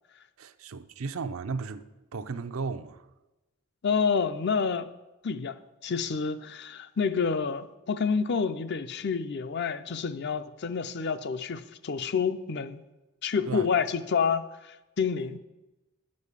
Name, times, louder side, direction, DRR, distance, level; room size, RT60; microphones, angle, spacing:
voice 1, 0.4-3.1 13.5-13.7, right 4 dB, 85° right, 0.6 m, -35 dB
voice 2, 3.8-4.9 5.2-5.6 5.8-12.8 13.2-15.4, left 5 dB, 55° left, 0.5 m, -28 dB
10.0 x 5.3 x 8.2 m
head